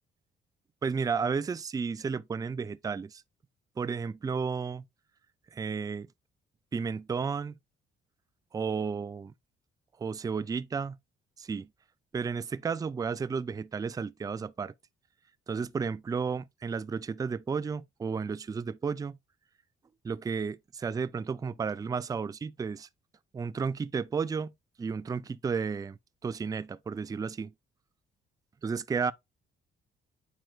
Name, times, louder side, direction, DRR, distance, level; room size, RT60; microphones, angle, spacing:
voice 1, 0.8-3.2 3.8-4.8 5.5-6.1 6.7-7.5 8.5-9.3 10.0-11.0 11.4-11.7 12.1-14.7 15.5-19.2 20.0-22.9 23.3-24.5 24.8-27.5 28.6-29.1, right 5 dB, 20° right, 0.3 m, -32 dB
9.2 x 4.4 x 2.3 m
cardioid pair, 90°, 20 cm